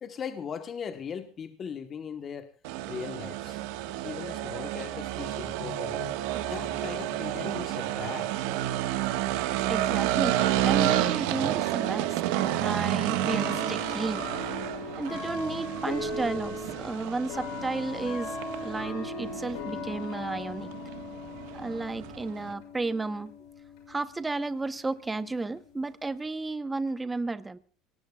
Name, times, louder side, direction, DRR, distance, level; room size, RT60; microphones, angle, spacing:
voice 1, 0.0-2.5 2.9-3.6 4.0-6.1 6.5-8.3, left 7 dB, 35° left, 1.1 m, -39 dB
sound 1, 2.6-22.5, right 13 dB, 85° right, 1.4 m, -30 dB
voice 2, 9.7-14.3 15.0-18.4 18.6-20.7 21.5-23.3 23.9-27.6, right 3 dB, 15° right, 0.8 m, -33 dB
sound 2, 11.0-11.1 12.2-12.3 13.3-26.5, left 3 dB, 80° left, 6.7 m, -39 dB
24.0 x 19.0 x 2.3 m
cardioid pair, 125°, 0 cm